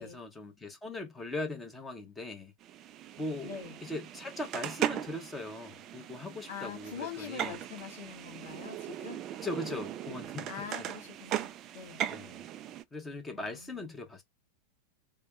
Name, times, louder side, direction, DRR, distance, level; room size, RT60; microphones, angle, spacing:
voice 1, 0.0-2.5 3.2-7.5 9.4-10.5 12.1-12.4 12.9-14.2, left 2 dB, 10° left, 1.1 m, -39 dB
sound 1, 2.6-12.8, right 11 dB, 35° right, 0.4 m, -39 dB
voice 2, 3.4-3.8 6.5-9.2 10.5-12.0 13.3-13.9, left 6 dB, 60° left, 1.6 m, -44 dB
3.4 x 2.2 x 3.6 m
figure-of-eight pair, 90°, 0 cm